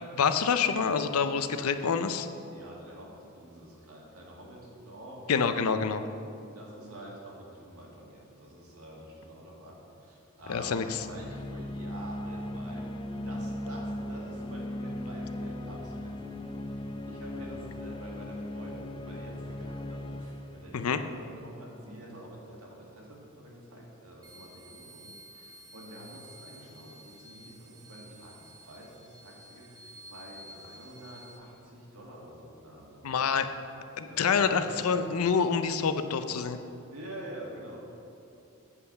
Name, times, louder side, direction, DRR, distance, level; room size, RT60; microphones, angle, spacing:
voice 1, 0.2-2.3 5.3-6.0 10.5-11.0 20.7-21.0 33.0-33.5 34.0-36.6, left 6 dB, 75° left, 10 dB, 0.5 m, -27 dB
voice 2, 2.5-5.5 6.5-10.7 11.0-20.8 21.2-33.2 34.1-35.0 36.9-37.8, right 1 dB, 75° right, -3 dB, 2.0 m, -47 dB
sound 1, 10.4-22.0, left 1 dB, 20° left, 0.3 m, -38 dB
sound 2, 24.2-31.4, right 1 dB, 15° right, 0.9 m, -52 dB
8.2 x 5.6 x 6.7 m, 2.7 s
head